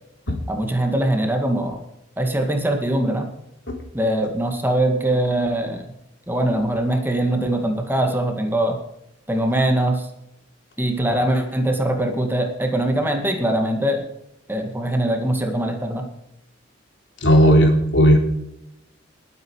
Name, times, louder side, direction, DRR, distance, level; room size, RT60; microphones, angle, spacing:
voice 1, 0.5-1.8 2.2-3.3 3.9-5.9 6.3-8.8 9.3-10.1 10.8-14.0 14.5-16.1, right 1 dB, 10° right, 3 dB, 2.1 m, -22 dB
voice 2, 17.2-18.2, equal, 70° left, 3 dB, 3.8 m, -14 dB
21.0 x 9.3 x 4.8 m, 0.82 s
head